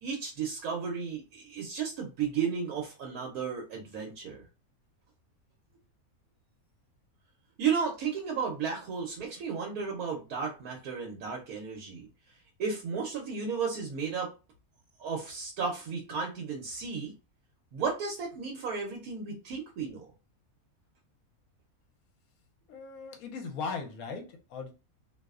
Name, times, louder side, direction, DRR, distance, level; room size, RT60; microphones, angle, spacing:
voice 1, 0.0-4.4 7.6-14.3 15.0-17.1 17.7-20.1, right 6 dB, 80° right, 1.1 m, -34 dB
voice 2, 22.7-24.7, left 4 dB, 80° left, 1.1 m, -38 dB
2.7 x 2.0 x 2.3 m
omnidirectional pair, 1.5 m